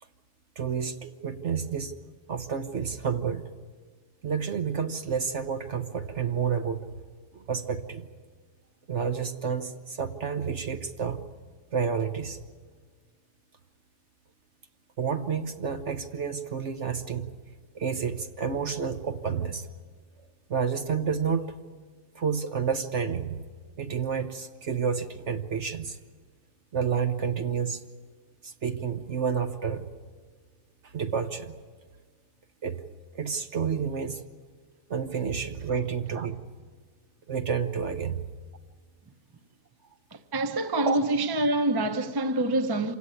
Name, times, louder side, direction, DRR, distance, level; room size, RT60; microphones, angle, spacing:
voice 1, 0.6-2.0 2.3-3.5 4.2-6.9 7.3-8.0 8.9-11.2 11.7-12.4 15.0-17.3 17.7-19.7 20.5-21.6 22.1-23.4 23.8-26.0 26.7-27.8 28.4-29.9 30.8-31.6 32.6-32.8 33.1-34.2 34.9-36.4 37.3-38.3 40.7-41.0, right 6 dB, 50° right, 1.2 m, -30 dB
voice 2, 40.1-42.9, right 2 dB, 20° right, 0.8 m, -26 dB
27.0 x 17.0 x 9.7 m
omnidirectional pair, 1.7 m